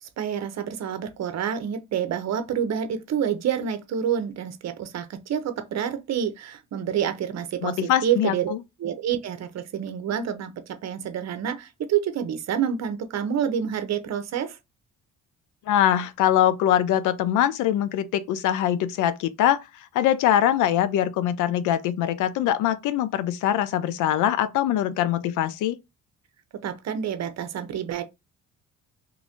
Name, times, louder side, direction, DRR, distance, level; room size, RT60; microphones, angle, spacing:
voice 1, 0.0-8.5 8.8-14.6 26.6-28.0, right 8 dB, 60° right, 0.7 m, -28 dB
voice 2, 7.6-8.6 15.7-19.6 19.9-25.8, left 11 dB, 85° left, 0.5 m, -23 dB
3.1 x 2.5 x 3.5 m
cardioid pair, 90°, 30 cm